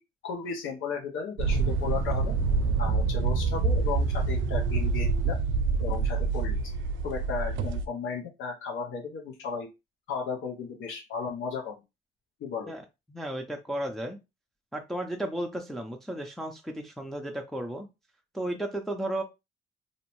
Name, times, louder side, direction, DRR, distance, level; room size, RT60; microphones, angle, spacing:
voice 1, 0.2-2.4 2.8-5.4 5.8-6.6 7.0-9.7 10.1-11.8 12.4-12.7, left 6 dB, 80° left, 1 dB, 0.6 m, -35 dB
sound 1, 1.4-7.9, right 4 dB, 75° right, 0.4 m, -26 dB
voice 2, 12.7-14.2 14.7-17.9 18.3-19.2, right 1 dB, ahead, 3 dB, 0.4 m, -34 dB
2.6 x 2.0 x 2.9 m, 0.24 s
cardioid pair, 90°, 20 cm